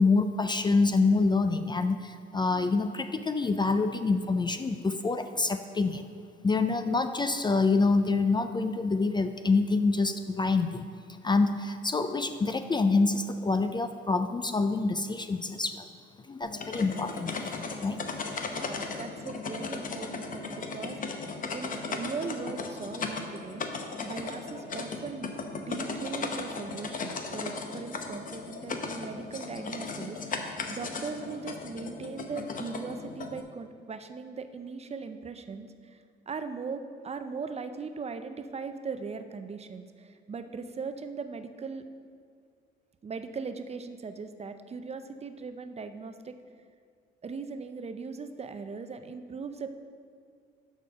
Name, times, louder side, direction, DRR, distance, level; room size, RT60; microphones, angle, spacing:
voice 1, 0.0-6.1 6.4-10.9 11.2-15.9 16.3-18.0, left 3 dB, 20° left, 9 dB, 0.4 m, -26 dB
sound 1, 16.4-33.4, left 4 dB, 45° left, 0.7 m, -37 dB
voice 2, 18.4-23.7 24.0-41.8 43.0-46.4 47.2-49.7, right 4 dB, 30° right, 9 dB, 0.5 m, -39 dB
6.3 x 5.0 x 6.6 m, 2.2 s
cardioid pair, 90°, 20 cm